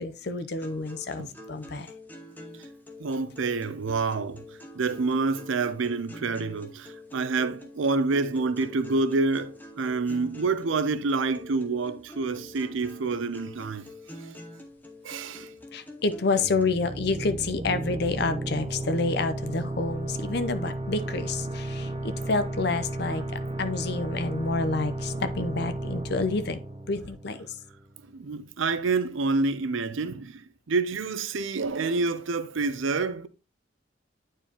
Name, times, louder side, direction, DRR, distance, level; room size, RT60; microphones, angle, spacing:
voice 1, 0.0-1.9 15.7-26.6 26.9-27.6, left 3 dB, 55° left, 0.7 m, -29 dB
sound 1, 0.6-16.6, left 1 dB, 10° left, 0.9 m, -46 dB
voice 2, 3.0-4.4 4.8-13.8 15.0-15.5 28.1-30.4 30.7-33.3, right 3 dB, 80° right, 0.6 m, -27 dB
sound 2, 16.4-27.8, right 2 dB, 25° right, 0.7 m, -34 dB
8.9 x 4.6 x 2.9 m
head